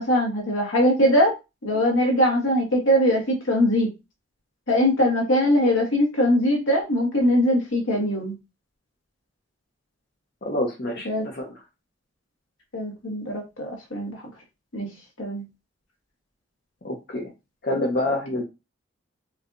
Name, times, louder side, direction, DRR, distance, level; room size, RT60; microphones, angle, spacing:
voice 1, 0.0-1.3 1.6-3.9 4.7-8.3 11.0-11.3 12.7-14.3 14.7-14.9 15.2-15.4, equal, 70° left, 1 dB, 1.3 m, -21 dB
voice 2, 10.4-11.5 16.8-17.3 17.6-18.4, left 1 dB, 50° left, -2 dB, 0.9 m, -27 dB
4.7 x 2.4 x 2.6 m, 0.25 s
head